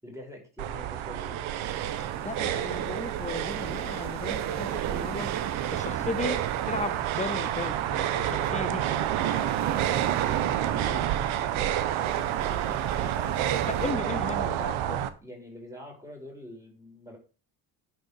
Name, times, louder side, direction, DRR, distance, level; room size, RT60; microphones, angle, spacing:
voice 1, 0.0-1.4 8.3-13.4 15.2-17.2, equal, 5° right, 5.4 m, -45 dB
sound 1, 0.6-15.1, right 11 dB, 75° right, 1.4 m, -29 dB
sound 2, 1.6-13.9, right 10 dB, 35° right, 0.7 m, -37 dB
voice 2, 2.2-5.4 5.7-8.8 12.5-12.8 13.7-15.1, left 4 dB, 15° left, 0.7 m, -36 dB
10.5 x 6.3 x 6.6 m
cardioid pair, 155°, 49 cm